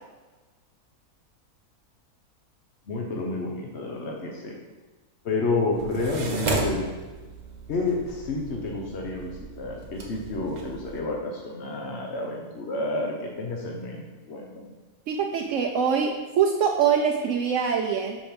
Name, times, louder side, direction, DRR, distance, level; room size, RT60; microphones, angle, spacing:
voice 1, 2.9-4.6 5.2-6.8 7.7-14.7, left 3 dB, 55° left, 0 dB, 1.1 m, -30 dB
sound 1, 5.7-11.0, right 2 dB, 40° right, 0.7 m, -34 dB
voice 2, 15.1-18.2, right 7 dB, 70° right, 1 dB, 0.9 m, -24 dB
5.8 x 5.2 x 5.1 m, 1.3 s
omnidirectional pair, 1.5 m